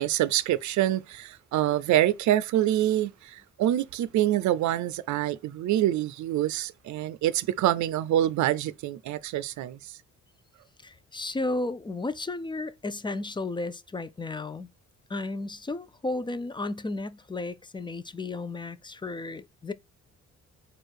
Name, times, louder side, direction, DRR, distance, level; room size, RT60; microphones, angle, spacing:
voice 1, 0.0-9.8, right 13 dB, 70° right, 0.5 m, -26 dB
voice 2, 10.8-14.7 15.1-19.7, left 2 dB, 15° left, 0.4 m, -33 dB
4.5 x 2.5 x 4.7 m
cardioid pair, 90°, 30 cm